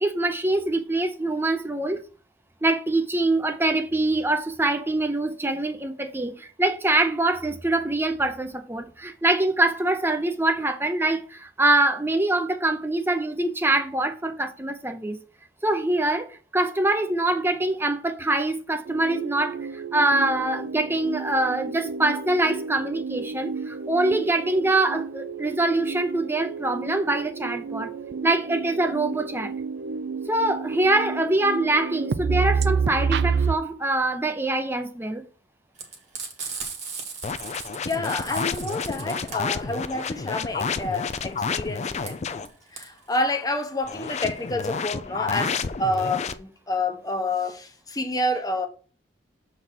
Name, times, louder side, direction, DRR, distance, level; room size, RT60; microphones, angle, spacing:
voice 1, 0.0-2.0 2.6-15.2 15.6-27.9 28.2-29.5 30.3-35.2, right 2 dB, 15° right, 0.7 m, -24 dB
sound 1, 18.9-33.5, right 5 dB, 65° right, 0.4 m, -30 dB
Frying (food), 35.8-44.5, right 5 dB, 40° right, 1.6 m, -38 dB
sound 2, 37.2-42.5 43.8-46.3, left 5 dB, 40° left, 0.4 m, -30 dB
voice 2, 37.8-48.7, left 2 dB, 20° left, 0.9 m, -29 dB
6.9 x 4.0 x 4.5 m
head